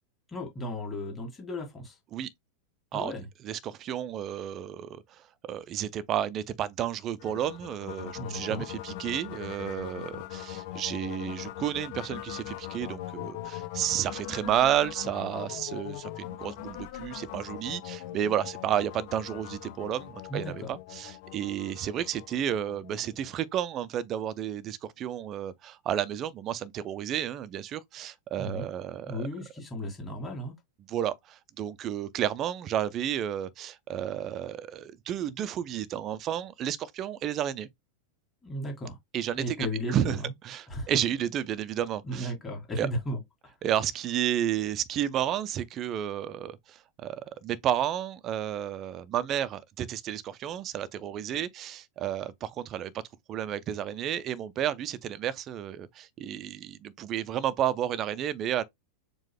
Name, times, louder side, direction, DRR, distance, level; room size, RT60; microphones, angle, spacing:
voice 1, 0.3-2.0 2.9-3.3 8.1-8.7 20.3-20.7 28.4-28.7 29.1-30.5 38.4-39.0 39.4-40.3 40.7-40.9 42.0-43.5, equal, 15° left, 1.8 m, -35 dB
voice 2, 3.4-29.3 30.9-37.7 39.1-40.2 40.4-42.3 42.8-42.9 43.6-52.9 53.3-58.6, right 10 dB, 30° right, 0.5 m, -31 dB
sound 1, 7.2-23.4, left 14 dB, 50° left, 1.0 m, -41 dB
4.6 x 2.3 x 3.5 m
figure-of-eight pair, 90°, 0 cm